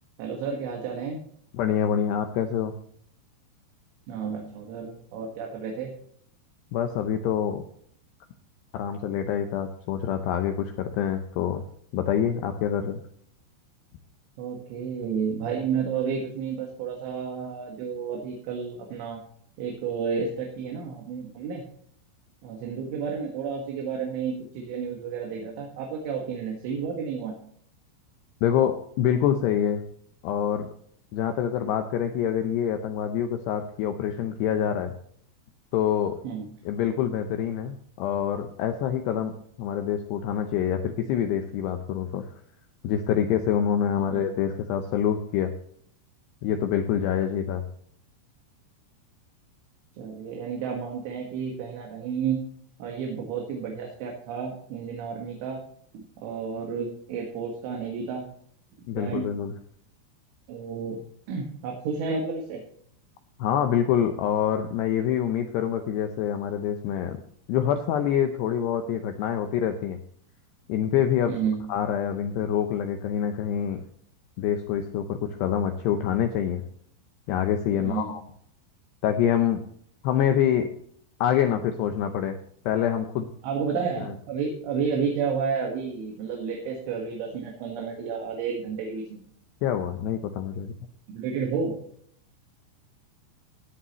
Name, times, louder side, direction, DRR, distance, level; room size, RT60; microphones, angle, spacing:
voice 1, 0.2-1.2 4.1-5.9 14.4-19.2 19.6-21.7 22.4-27.4 36.2-36.5 44.0-44.2 49.9-52.4 52.8-55.6 55.9-58.3 58.8-59.3 60.5-61.0 61.3-62.6 71.3-71.6 77.8-78.2 83.4-89.2 91.1-91.8, right 6 dB, 75° right, 0 dB, 4.0 m, -31 dB
voice 2, 1.6-2.7 6.7-7.6 8.7-11.6 11.9-13.0 28.4-29.8 30.2-30.7 31.1-34.9 35.7-36.2 36.7-39.3 39.6-42.3 42.8-45.5 46.4-47.6 58.9-59.5 63.4-67.2 67.5-70.0 70.7-71.3 71.7-73.8 74.4-76.6 77.3-78.2 79.0-79.6 80.0-80.7 81.2-82.4 82.7-83.3 89.6-90.7, left 9 dB, 85° left, 6 dB, 2.4 m, -26 dB
17.0 x 10.0 x 3.1 m, 0.63 s
omnidirectional pair, 5.9 m